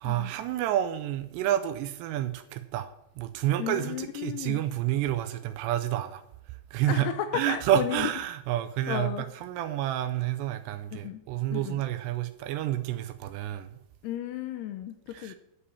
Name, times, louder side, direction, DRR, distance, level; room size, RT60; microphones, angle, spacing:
voice 1, 0.0-2.9 3.2-6.2 6.7-7.1 7.3-13.7 15.1-15.4, right 12 dB, 80° right, 9 dB, 2.6 m, -29 dB
voice 2, 3.6-4.6 6.9-8.1 8.9-9.3 10.9-11.2 11.5-11.8 14.0-15.4, left 11 dB, 85° left, 7 dB, 2.4 m, -34 dB
9.9 x 5.5 x 8.2 m, 0.79 s
omnidirectional pair, 5.2 m